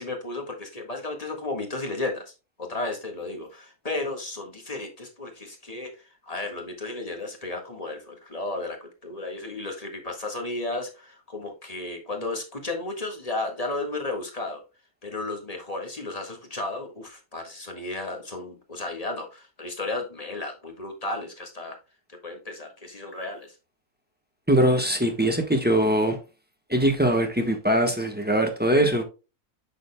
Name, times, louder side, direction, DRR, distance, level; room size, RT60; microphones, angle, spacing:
voice 1, 0.0-2.3 2.6-14.6 15.0-21.8 22.1-23.5, left 2 dB, 25° left, 1.7 m, -34 dB
voice 2, 24.5-26.2 26.7-29.0, right 1 dB, 5° right, 1.1 m, -22 dB
8.8 x 6.4 x 2.3 m
omnidirectional pair, 1.6 m